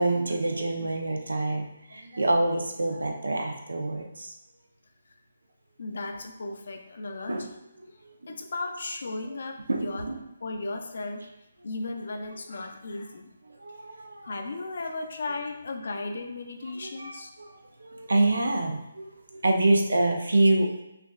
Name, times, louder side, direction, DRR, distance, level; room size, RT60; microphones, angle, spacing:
voice 1, 0.0-4.3 7.3-7.5 8.2-8.4 9.7-10.1 13.6-14.3 16.8-20.8, right 2 dB, 75° right, 3 dB, 0.7 m, -26 dB
voice 2, 5.8-7.5 8.3-10.1 10.4-11.3 11.6-13.3 14.2-17.3, left 2 dB, 60° left, 5 dB, 0.6 m, -35 dB
5.7 x 2.6 x 2.4 m, 0.88 s
figure-of-eight pair, 145°, 0 cm